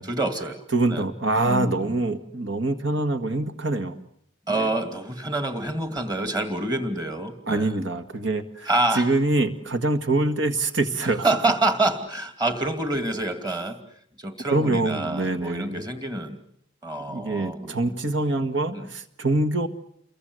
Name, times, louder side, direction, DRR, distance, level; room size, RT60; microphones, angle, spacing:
voice 1, 0.0-0.6 0.9-1.0 1.4-2.0 4.5-7.7 8.7-9.1 11.2-13.8 14.2-16.4 16.8-17.9 18.7-18.9, right 2 dB, 20° right, 7 dB, 2.5 m, -27 dB
voice 2, 0.7-4.0 4.5-4.7 7.5-11.3 14.5-15.8 17.1-19.7, right 2 dB, 60° right, 9 dB, 1.9 m, -25 dB
29.0 x 22.5 x 8.1 m, 0.67 s
head